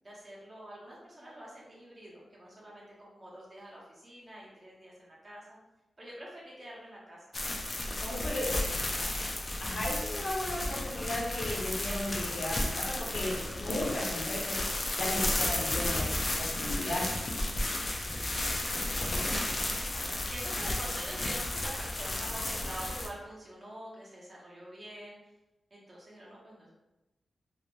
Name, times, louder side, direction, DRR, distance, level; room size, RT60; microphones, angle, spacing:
voice 1, 0.0-5.6 6.0-7.3 8.0-9.1 17.6-18.4 18.9-25.3 25.7-26.7, equal, 30° right, -5 dB, 0.8 m, -47 dB
sound 1, 7.3-23.1, left 1 dB, 35° left, 0.4 m, -33 dB
voice 2, 7.7-8.5 9.6-14.6 14.9-16.1 16.4-17.1, left 1 dB, 80° left, -5 dB, 0.8 m, -35 dB
2.5 x 2.0 x 3.0 m, 1.0 s
wide cardioid pair, 125°, 0 cm